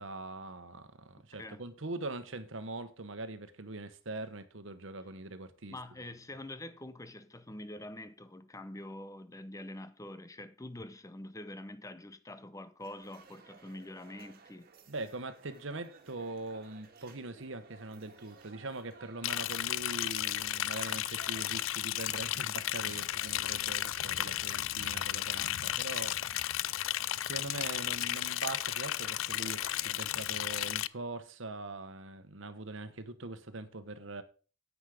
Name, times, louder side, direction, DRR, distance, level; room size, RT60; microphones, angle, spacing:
voice 1, 0.0-5.8 14.9-26.5 27.2-34.2, right 2 dB, 65° right, 1.2 m, -42 dB
voice 2, 1.2-1.6 5.7-14.7, left 1 dB, 15° left, 0.8 m, -45 dB
sound 1, 12.8-30.4, right 4 dB, 45° right, 1.9 m, -57 dB
Liquid, 19.2-30.9, left 13 dB, 75° left, 0.4 m, -34 dB
9.7 x 8.5 x 5.0 m
head